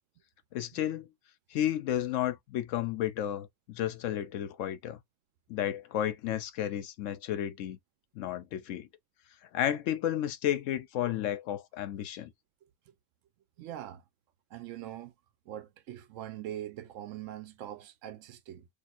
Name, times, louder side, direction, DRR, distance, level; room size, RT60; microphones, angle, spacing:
voice 1, 0.5-1.1 1.5-5.0 5.5-7.8 8.2-8.9 9.5-12.3, left 11 dB, 90° left, 1.0 m, -32 dB
voice 2, 13.6-14.0 14.5-15.1 15.5-18.7, right 12 dB, 90° right, 0.9 m, -42 dB
2.6 x 2.4 x 4.2 m
omnidirectional pair, 1.3 m